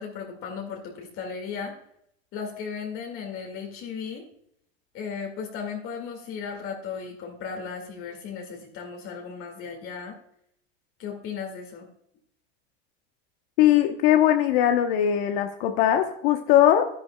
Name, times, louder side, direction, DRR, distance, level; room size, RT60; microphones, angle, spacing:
voice 1, 0.0-1.8 2.3-4.3 4.9-10.2 11.0-11.9, left 6 dB, 45° left, 1 dB, 2.0 m, -36 dB
voice 2, 13.6-16.8, left 11 dB, 70° left, 5 dB, 1.0 m, -20 dB
11.5 x 10.5 x 2.2 m, 0.72 s
supercardioid pair, 130°, 31 cm